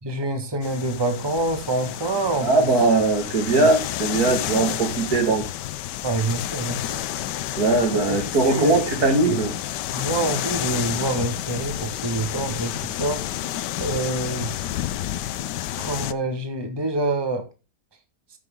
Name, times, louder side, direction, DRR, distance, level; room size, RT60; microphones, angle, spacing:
voice 1, 0.0-2.7 3.5-3.7 6.0-7.0 7.9-8.2 8.4-9.4 9.9-13.2 13.8-14.8 15.1-15.2 15.8-17.4, right 2 dB, 15° right, 6 dB, 1.6 m, -26 dB
sound 1, 0.6-16.1, left 13 dB, 90° left, 1.3 m, -30 dB
voice 2, 2.4-5.4 7.5-9.5, right 3 dB, 65° right, 4 dB, 2.7 m, -20 dB
14.0 x 6.3 x 3.8 m, 0.29 s
omnidirectional pair, 1.8 m